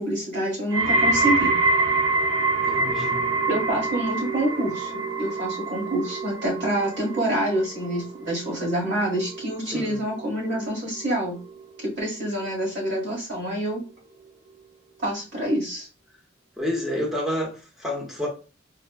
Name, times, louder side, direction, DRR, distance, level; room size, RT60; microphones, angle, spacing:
voice 1, 0.0-1.6 3.5-11.4 11.8-13.8 15.0-15.9, right 1 dB, 60° right, 1.7 m, -27 dB
sound 1, 0.7-11.8 12.1-12.7 13.4-13.5, right 2 dB, 80° right, 1.0 m, -26 dB
voice 2, 2.7-3.2 9.6-10.0 16.6-18.3, left 1 dB, ahead, 1.0 m, -29 dB
4.3 x 2.3 x 2.3 m
head